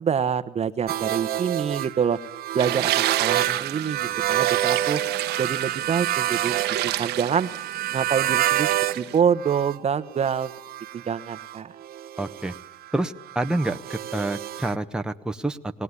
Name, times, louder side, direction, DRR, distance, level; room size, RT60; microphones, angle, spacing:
voice 1, 0.0-2.2 2.5-5.0 5.4-7.5 7.9-8.7 9.0-10.5 10.9-11.7, right 7 dB, 40° right, 12 dB, 1.1 m, -26 dB
sound 1, 0.9-9.0 9.3-14.7, right 13 dB, 65° right, 0.9 m, -28 dB
sound 2, 2.6-9.2, right 15 dB, 80° right, 1.2 m, -30 dB
voice 2, 12.2-12.5 12.9-15.7, right 2 dB, 5° right, 6 dB, 1.1 m, -28 dB
21.5 x 18.0 x 9.7 m, 0.87 s
cardioid pair, 110°, 17 cm